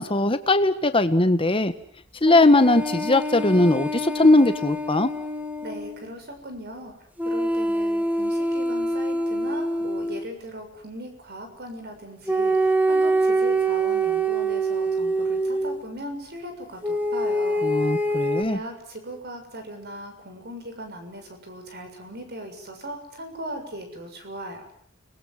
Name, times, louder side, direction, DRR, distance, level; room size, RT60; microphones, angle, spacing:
voice 1, 0.0-1.7 2.2-5.1 17.6-18.6, left 2 dB, 25° left, 10 dB, 1.6 m, -19 dB
sound 1, 2.2-6.0 7.2-10.3 12.3-15.8 16.8-18.4, right 2 dB, 10° right, 2.8 m, -25 dB
voice 2, 5.6-6.9 7.3-17.7 18.5-24.7, right 1 dB, 50° right, 6 dB, 6.9 m, -38 dB
30.0 x 21.0 x 7.6 m, 0.64 s
head